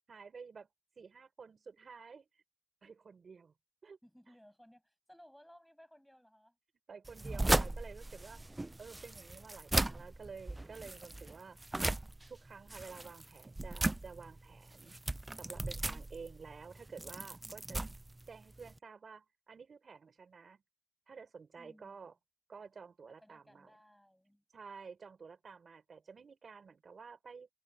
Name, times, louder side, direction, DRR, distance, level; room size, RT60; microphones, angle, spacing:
voice 1, 0.1-0.7 0.9-2.4 2.8-3.5 3.8-4.0 4.3-4.4 6.9-8.4 8.8-11.6 12.3-15.0 15.3-17.8 18.3-20.6 21.1-22.1 22.5-23.7 24.5-27.5, right 5 dB, 80° right, 5.1 m, -51 dB
voice 2, 4.0-6.6 21.6-22.1 23.2-24.8, equal, 5° left, 7.7 m, -61 dB
sound 1, 7.0-18.8, right 2 dB, 20° right, 0.4 m, -37 dB
wide cardioid pair, 135°, 0 cm